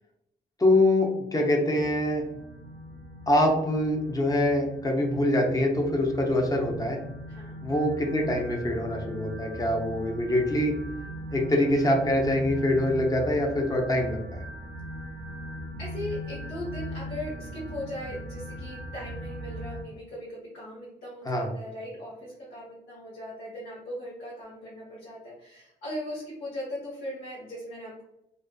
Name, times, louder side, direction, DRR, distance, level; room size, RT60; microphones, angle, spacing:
voice 1, 0.6-2.2 3.3-7.0 7.6-10.7 11.3-14.4 21.3-21.5, left 1 dB, 20° left, 0 dB, 0.6 m, -24 dB
sound 1, 1.8-19.8, equal, 75° right, 0.4 m, -40 dB
voice 2, 15.8-28.0, left 1 dB, 75° left, -7 dB, 1.0 m, -39 dB
2.4 x 2.4 x 2.2 m, 0.87 s
cardioid pair, 85°, 19 cm